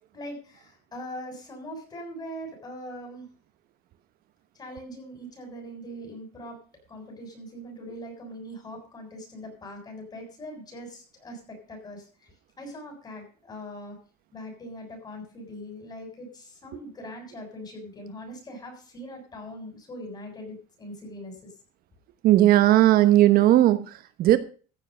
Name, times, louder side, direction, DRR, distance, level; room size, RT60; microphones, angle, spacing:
voice 1, 0.1-3.3 4.5-6.6 6.9-12.3 12.6-14.0 14.3-21.5, equal, 25° left, 2 dB, 6.9 m, -41 dB
voice 2, 22.2-24.4, right 14 dB, 60° right, 12 dB, 1.1 m, -17 dB
15.0 x 7.5 x 6.7 m, 0.39 s
cardioid pair, 140°, 18 cm